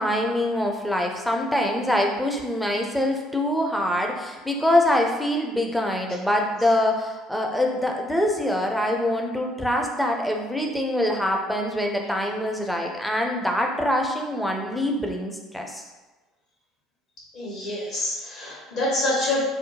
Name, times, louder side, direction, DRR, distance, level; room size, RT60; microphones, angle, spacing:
voice 1, 0.0-15.8, left 1 dB, 5° left, 1 dB, 0.4 m, -24 dB
voice 2, 17.3-19.4, left 1 dB, 50° left, -6 dB, 1.2 m, -26 dB
2.7 x 2.1 x 2.7 m, 1.2 s
figure-of-eight pair, 60°, 0 cm